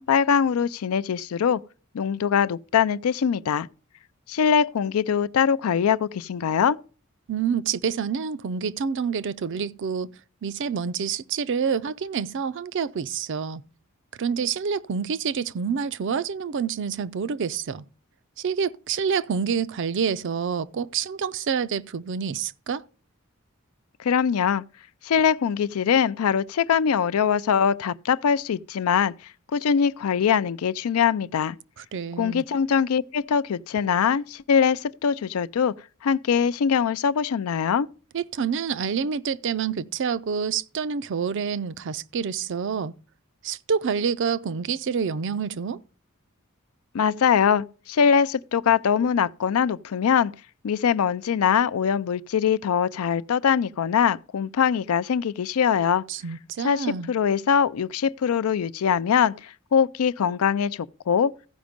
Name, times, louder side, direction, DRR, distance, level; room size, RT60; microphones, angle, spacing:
voice 1, 0.0-1.6 1.9-3.7 4.3-6.8 24.0-24.6 25.0-29.1 29.5-31.6 32.2-35.7 36.0-37.9 46.9-50.3 50.6-56.0 56.6-61.3, left 7 dB, 85° left, 0.4 m, -22 dB
voice 2, 7.3-10.1 10.4-13.6 14.2-17.8 18.4-22.8 31.8-32.4 38.1-42.9 43.4-45.8 56.1-57.1, right 6 dB, 60° right, 0.4 m, -27 dB
15.0 x 5.2 x 5.1 m
head